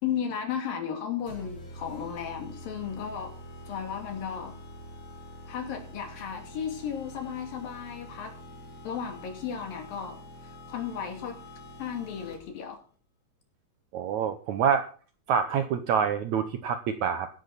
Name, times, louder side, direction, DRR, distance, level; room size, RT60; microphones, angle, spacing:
voice 1, 0.0-3.3 3.7-4.5 5.5-8.3 8.8-10.2 10.7-11.4 11.8-12.8, left 8 dB, 70° left, 4 dB, 4.4 m, -34 dB
sound 1, 1.3-12.6, equal, 35° left, 4.9 m, -46 dB
voice 2, 13.9-14.9 15.3-17.3, right 7 dB, 70° right, 9 dB, 1.8 m, -26 dB
16.0 x 12.0 x 4.1 m, 0.40 s
omnidirectional pair, 4.3 m